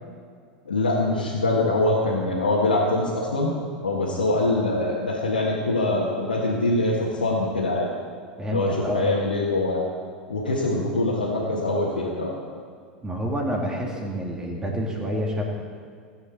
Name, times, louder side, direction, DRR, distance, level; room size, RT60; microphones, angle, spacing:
voice 1, 0.6-3.5 3.8-7.9 8.5-9.8 10.3-12.3, left 2 dB, 75° left, -5 dB, 1.7 m, -23 dB
voice 2, 8.4-9.1 13.0-15.4, equal, 15° right, -1 dB, 2.5 m, -28 dB
17.0 x 7.8 x 4.6 m, 2.1 s
figure-of-eight pair, 85°, 5 cm